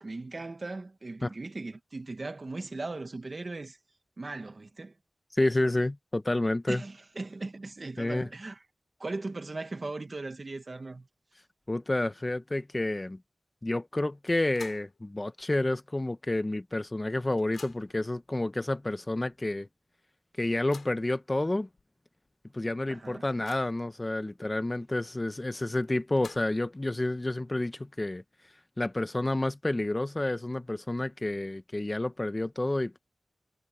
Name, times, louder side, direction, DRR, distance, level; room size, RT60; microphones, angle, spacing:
voice 1, 0.0-3.8 4.2-5.0 6.7-8.6 9.0-11.1 22.9-23.3, right 3 dB, 40° right, 1.8 m, -38 dB
voice 2, 5.3-6.8 8.0-8.3 11.7-13.2 13.6-19.7 20.4-21.7 22.5-28.2 28.8-33.0, left 2 dB, 25° left, 0.9 m, -29 dB
sound 1, 14.3-15.0 15.4-15.5 16.6-16.7 16.9-18.1 18.8-18.9 19.3-19.4 20.4-21.1 21.8-21.9 22.3-22.4 22.9-23.9 25.8-26.7, left 5 dB, 85° left, 7.8 m, -51 dB
wide cardioid pair, 105°, 0 cm